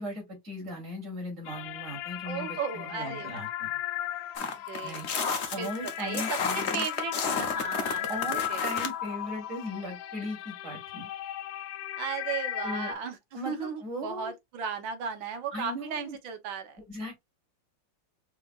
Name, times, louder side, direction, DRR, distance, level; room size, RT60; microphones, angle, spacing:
voice 1, 0.0-3.7 4.8-5.0 5.5-6.8 8.1-11.1 12.6-12.9 13.3-14.3 15.5-16.1 16.9-17.2, equal, 40° right, 3.0 m, -38 dB
sound 1, 1.4-12.9, left 12 dB, 85° left, 1.3 m, -36 dB
voice 2, 2.2-3.5 4.7-5.0 5.6-8.1 8.3-8.7 12.0-16.8, right 7 dB, 90° right, 1.7 m, -36 dB
sound 2, 4.4-8.9, left 5 dB, 45° left, 0.9 m, -32 dB
5.0 x 3.6 x 2.5 m
omnidirectional pair, 2.0 m